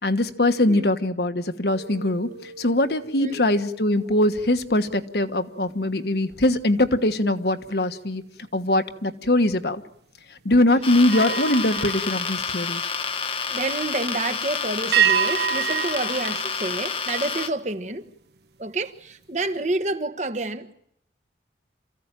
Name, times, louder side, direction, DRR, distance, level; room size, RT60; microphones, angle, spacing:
voice 1, 0.0-8.2 8.5-9.8 10.3-12.9, left 1 dB, 65° left, 1.4 m, -22 dB
sound 1, 1.7-7.3 7.7-8.0 11.0-13.2 14.9-17.5, right 8 dB, 70° right, 1.2 m, -30 dB
sound 2, 10.8-17.5, left 5 dB, 30° left, 1.2 m, -29 dB
voice 2, 13.5-18.1 18.6-20.7, right 2 dB, 40° right, 1.3 m, -29 dB
27.5 x 15.5 x 9.1 m
head